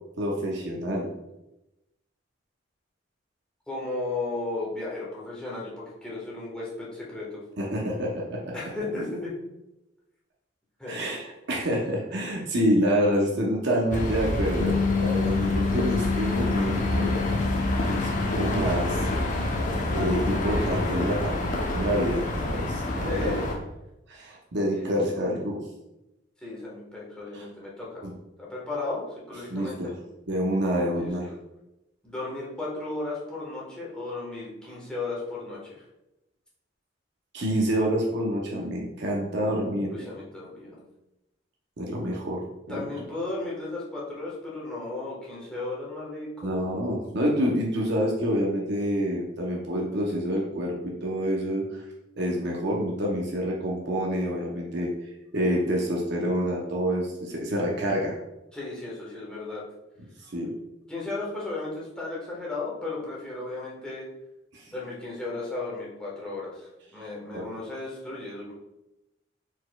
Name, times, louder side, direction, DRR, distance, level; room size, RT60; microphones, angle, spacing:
voice 1, 0.2-1.1 7.6-8.5 10.9-17.1 17.8-19.1 19.6-21.5 21.7-23.4 24.1-25.6 29.5-29.9 30.3-31.3 37.3-40.0 41.8-42.8 46.4-51.8 52.2-54.9 55.3-58.2 60.3-60.5 64.5-64.6 67.3-67.5, equal, 65° right, -2 dB, 0.7 m, -27 dB
voice 2, 3.7-7.4 8.5-9.3 10.8-10.9 23.0-23.5 24.7-25.2 26.4-28.0 28.4-29.0 29.3-29.9 30.9-31.1 32.0-35.8 39.9-40.8 42.7-46.6 58.5-59.6 60.9-64.1 64.7-68.5, left 2 dB, 5° left, -6 dB, 1.3 m, -35 dB
sound 1, 13.9-23.6, left 1 dB, 45° left, 0.7 m, -28 dB
Bass guitar, 14.6-20.9, left 6 dB, 80° left, 0.4 m, -30 dB
4.4 x 4.1 x 2.3 m, 0.93 s
head